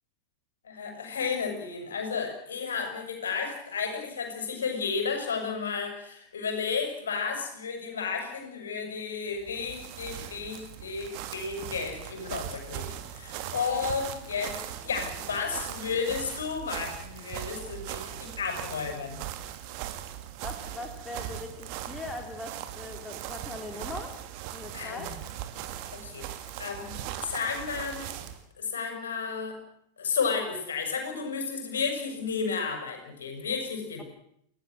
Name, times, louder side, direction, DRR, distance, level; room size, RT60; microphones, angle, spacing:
voice 1, 0.6-19.2 24.7-25.1 25.9-26.2 26.6-26.9 27.2-28.1 28.6-29.6 30.0-34.0, left 5 dB, 65° left, 5 dB, 6.7 m, -32 dB
sound 1, 9.3-28.4, right 12 dB, 45° right, 2.5 m, -39 dB
voice 2, 14.8-15.3 15.9-16.1 20.4-24.1 24.5-25.2, left 2 dB, 10° left, 4 dB, 3.4 m, -41 dB
29.0 x 17.0 x 7.7 m, 0.73 s
figure-of-eight pair, 90°, 0 cm